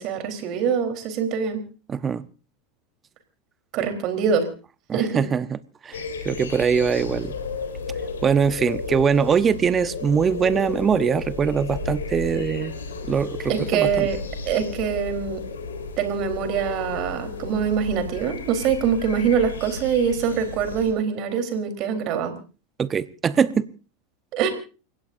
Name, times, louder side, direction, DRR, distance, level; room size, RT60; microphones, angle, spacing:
voice 1, 0.0-1.6 3.7-4.5 4.9-5.2 13.5-14.2 14.5-15.4 16.0-22.3 24.3-24.5, right 7 dB, 50° right, 3.9 m, -24 dB
voice 2, 1.9-2.3 4.9-7.3 8.2-12.7 13.0-14.1 22.8-23.7, right 6 dB, 25° right, 1.0 m, -22 dB
sound 1, 5.9-20.9, left 4 dB, 85° left, 4.0 m, -33 dB
29.5 x 16.5 x 2.7 m
hypercardioid pair, 90°, 0 cm